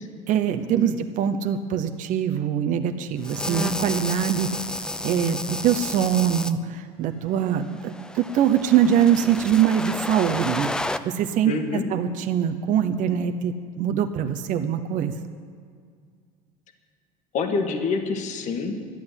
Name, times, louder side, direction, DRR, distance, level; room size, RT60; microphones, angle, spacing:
voice 1, 0.3-4.6 5.0-11.5 11.9-15.1, right 9 dB, 50° right, 7 dB, 0.7 m, -23 dB
sound 1, 3.2-6.5 7.6-11.0, left 1 dB, 5° left, 0.4 m, -31 dB
voice 2, 11.5-11.8 17.3-18.8, left 4 dB, 45° left, 5 dB, 1.5 m, -27 dB
12.0 x 9.7 x 8.0 m, 2.1 s
cardioid pair, 125°, 17 cm